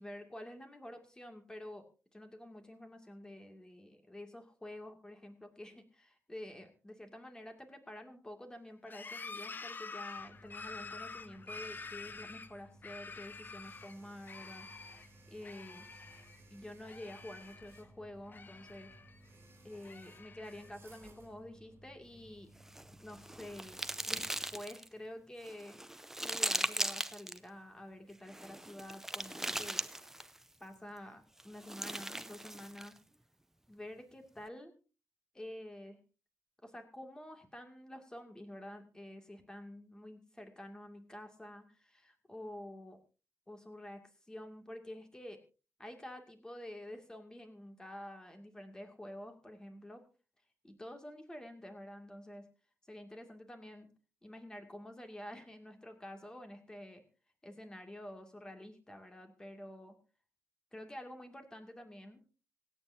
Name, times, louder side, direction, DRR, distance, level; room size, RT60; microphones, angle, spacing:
voice 1, 0.0-15.9 16.5-18.9 19.6-22.5 23.0-29.8 30.6-33.0 33.7-34.7 35.3-36.0 36.6-43.0 43.5-45.4 45.8-50.0 50.6-52.5 52.9-53.9 54.2-57.0 57.4-60.0 60.7-62.2, left 1 dB, 15° left, 5 dB, 2.3 m, -49 dB
sound 1, 8.9-13.9 14.2-15.1 15.4-16.4 16.6-17.8 18.3-19.2 19.7-20.7, left 4 dB, 40° left, 0.8 m, -48 dB
sound 2, 10.1-24.6, right 1 dB, 40° right, 6.3 m, -60 dB
sound 3, 22.6-24.9 25.4-27.4 28.3-30.4 31.4-33.0, right 1 dB, 10° right, 0.5 m, -39 dB
26.0 x 8.9 x 2.7 m, 0.33 s
wide cardioid pair, 150°, 5 cm